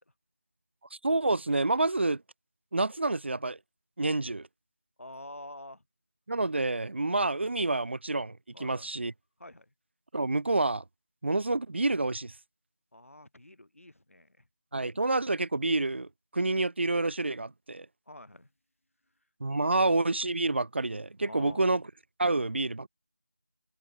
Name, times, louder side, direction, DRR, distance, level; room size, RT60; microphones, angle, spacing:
voice 1, 0.9-2.2 2.7-3.6 4.0-4.5 6.3-9.1 10.1-10.8 11.2-12.3 14.7-17.9 19.4-21.8 22.2-22.9, right 2 dB, 55° right, 0.7 m, -28 dB
voice 2, 5.0-5.8 8.5-8.9 9.4-9.7 12.9-14.4 18.1-18.5 21.3-21.8, left 1 dB, 75° left, 3.4 m, -47 dB
figure-of-eight pair, 170°, 8 cm